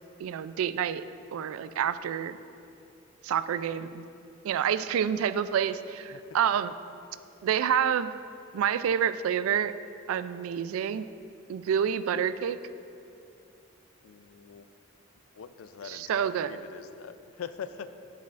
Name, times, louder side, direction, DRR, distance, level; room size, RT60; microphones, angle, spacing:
voice 1, 0.2-1.0 1.3-2.4 3.2-4.1 4.4-6.7 7.4-8.2 8.5-9.7 10.1-11.1 11.5-12.6 15.8-16.6, right 8 dB, 85° right, 14 dB, 0.3 m, -28 dB
voice 2, 14.0-14.7 15.4-17.9, left 7 dB, 80° left, 12 dB, 0.4 m, -43 dB
10.5 x 8.2 x 2.4 m, 2.7 s
head